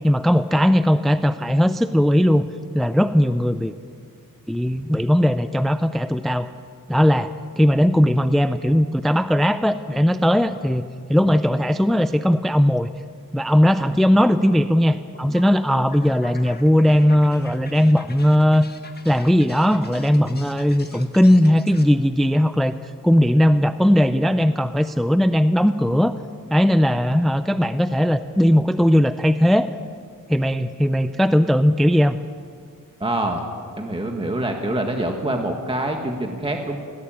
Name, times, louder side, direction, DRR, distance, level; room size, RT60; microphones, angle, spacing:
voice 1, 0.0-2.5 2.7-3.7 4.5-6.5 6.9-10.8 11.1-12.9 13.3-18.7 19.0-26.1 26.5-29.7 30.3-32.2, equal, ahead, 11 dB, 0.5 m, -18 dB
sound 1, 14.9-21.9, left 3 dB, 30° left, 1.5 m, -44 dB
voice 2, 33.0-33.4 33.8-36.8, right 1 dB, 15° right, 2 dB, 1.7 m, -25 dB
20.0 x 17.0 x 8.9 m, 2.1 s
wide cardioid pair, 155°, 34 cm